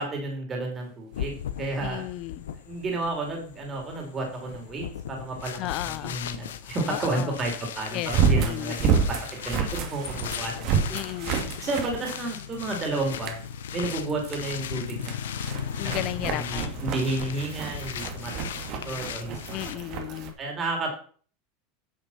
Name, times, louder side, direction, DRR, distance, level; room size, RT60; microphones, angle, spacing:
voice 1, 0.0-2.1 2.7-10.8 11.6-13.4 13.7-15.4 15.8-19.6 20.1-20.9, right 2 dB, 30° right, 1 dB, 3.7 m, -32 dB
sound 1, 1.1-19.8, left 9 dB, 80° left, 1.0 m, -37 dB
sound 2, 1.5-1.6 8.0-12.7 13.1-13.5 13.9-14.4 14.9-20.3, right 6 dB, 55° right, 2.3 m, -29 dB
voice 2, 1.8-2.4 5.6-6.2 6.8-7.3 7.9-8.9 10.9-11.5 15.8-16.8 19.5-20.3, left 16 dB, 55° left, 18 dB, 0.7 m, -34 dB
10.5 x 5.9 x 5.9 m, 0.44 s
hypercardioid pair, 95°, 0 cm